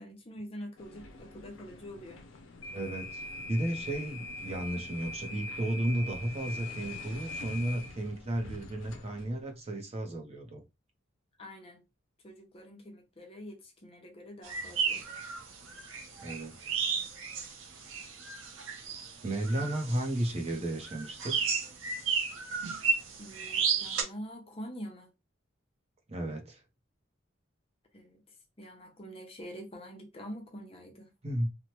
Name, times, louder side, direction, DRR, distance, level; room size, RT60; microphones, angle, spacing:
voice 1, 0.0-2.2 11.4-11.8 12.2-15.0 19.6-19.7 23.2-25.1 27.9-28.2 28.6-31.1, equal, 30° left, 0.7 m, -45 dB
sound 1, 0.8-9.4, left 2 dB, 75° left, 0.5 m, -43 dB
voice 2, 2.7-10.6 16.2-16.7 19.2-21.5 26.1-26.6 31.2-31.5, right 1 dB, 30° right, 0.6 m, -33 dB
sound 2, 14.4-24.0, right 6 dB, 85° right, 0.7 m, -33 dB
3.0 x 2.1 x 2.9 m
head